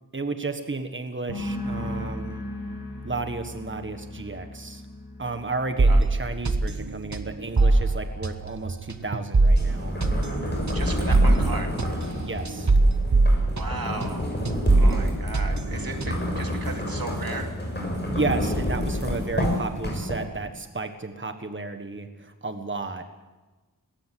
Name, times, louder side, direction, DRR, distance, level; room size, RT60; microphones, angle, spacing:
voice 1, 0.1-2.5 3.0-4.8 5.2-10.0 12.2-12.8 18.1-23.1, right 3 dB, 35° right, 7 dB, 1.5 m, -32 dB
sound 1, 1.3-8.7 9.0-9.6, left 1 dB, 85° left, 7.3 m, -38 dB
sound 2, 5.8-14.2 14.4-16.4, right 2 dB, 55° right, 1.5 m, -22 dB
sound 3, 9.5-20.5, left 1 dB, 30° left, 7.1 m, -29 dB
voice 2, 10.7-11.7 13.4-14.4 14.7-17.5, right 3 dB, 80° right, 3 dB, 2.8 m, -35 dB
19.5 x 18.0 x 7.6 m, 1.2 s
wide cardioid pair, 50°, 35 cm